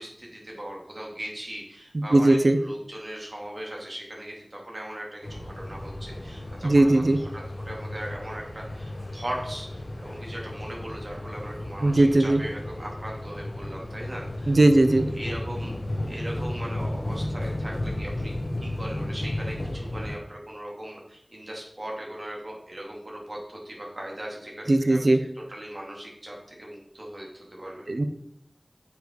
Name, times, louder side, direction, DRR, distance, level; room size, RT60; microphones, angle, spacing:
voice 1, 0.0-14.8 15.1-15.7 16.1-18.3 18.6-27.9, right 1 dB, 55° right, -2 dB, 2.8 m, -39 dB
voice 2, 2.1-2.6 6.6-7.2 11.8-12.4 14.5-15.1 24.7-25.2 27.9-28.1, right 2 dB, 75° right, 9 dB, 0.6 m, -19 dB
sound 1, 5.2-20.2, left 1 dB, 70° left, 1.2 m, -34 dB
8.6 x 6.0 x 3.9 m, 0.73 s
wide cardioid pair, 45°, 0 cm